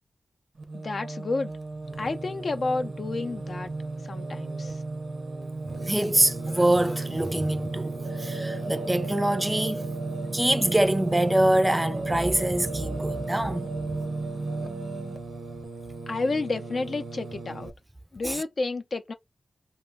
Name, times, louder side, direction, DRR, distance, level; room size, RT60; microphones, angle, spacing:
Singing, 0.6-17.7, right 3 dB, 65° right, 0.6 m, -34 dB
voice 1, 0.7-1.5 2.0-3.7 4.1-4.8 16.1-17.7 18.1-19.1, left 3 dB, 65° left, 0.5 m, -30 dB
voice 2, 5.8-9.8 10.3-13.7 18.2-18.4, right 1 dB, 15° right, 0.4 m, -24 dB
2.2 x 2.1 x 3.4 m
cardioid pair, 50°, 0 cm